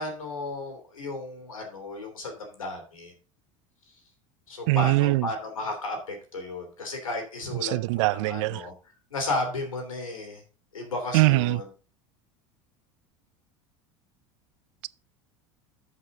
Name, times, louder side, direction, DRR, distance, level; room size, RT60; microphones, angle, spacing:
voice 1, 0.0-3.1 4.5-8.7 9.1-10.4 10.7-11.6, left 2 dB, 90° left, 3.0 m, -34 dB
voice 2, 4.7-5.3 7.5-8.7 11.1-11.6, right 23 dB, 65° right, 0.4 m, -22 dB
12.0 x 5.6 x 3.8 m
hypercardioid pair, 80°, 17 cm